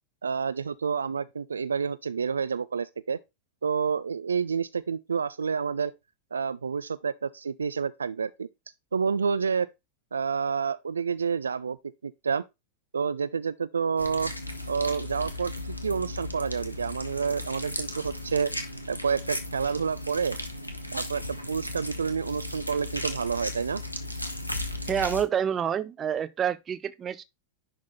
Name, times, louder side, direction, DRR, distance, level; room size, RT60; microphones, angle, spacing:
voice 1, 0.2-3.2 3.6-5.9 6.3-8.5 8.9-9.7 10.1-11.8 12.0-12.4 12.9-14.3 14.7-18.5 18.9-20.4 20.9-23.8, right 6 dB, 75° right, 0.3 m, -29 dB
sound 1, 14.0-25.2, left 1 dB, 85° left, 1.2 m, -36 dB
voice 2, 24.9-27.2, right 8 dB, 25° right, 0.7 m, -28 dB
11.0 x 3.6 x 4.0 m
figure-of-eight pair, 90°, 0 cm